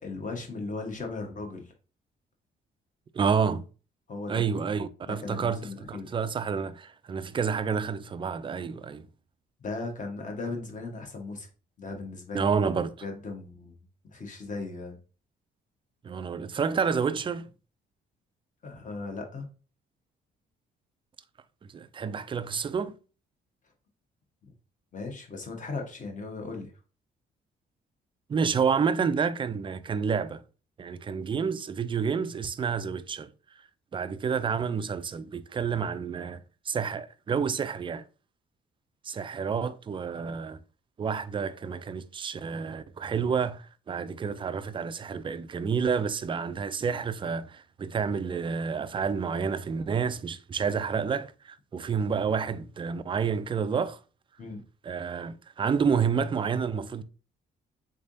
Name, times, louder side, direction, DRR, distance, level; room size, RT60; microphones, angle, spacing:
voice 1, 0.0-1.7 4.1-4.4 5.0-6.1 9.6-11.5 11.8-12.5 13.0-15.0 18.6-19.5 24.4-24.5 24.9-26.7 54.4-54.6, left 3 dB, 40° left, 1.2 m, -37 dB
voice 2, 3.1-3.6 4.3-9.1 12.3-13.0 16.0-17.5 21.7-23.0 28.3-30.4 30.8-33.3 33.9-36.4 36.7-38.0 39.0-40.6 41.0-54.0 54.8-57.0, right 6 dB, 25° right, 0.3 m, -29 dB
3.7 x 3.3 x 2.6 m
cardioid pair, 90°, 20 cm